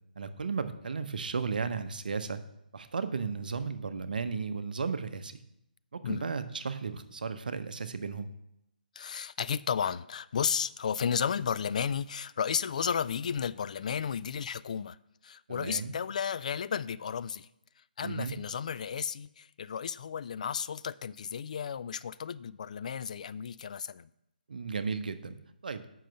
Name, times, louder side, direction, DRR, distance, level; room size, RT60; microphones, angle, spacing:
voice 1, 0.2-2.4 2.7-5.4 5.9-8.3 15.5-15.9 18.0-18.4 24.5-25.4 25.6-25.9, right 5 dB, 60° right, 0.8 m, -34 dB
voice 2, 9.0-15.0 15.2-17.5 17.8-24.1, left 7 dB, 50° left, 0.3 m, -33 dB
7.5 x 5.8 x 6.4 m
figure-of-eight pair, 145°, 5 cm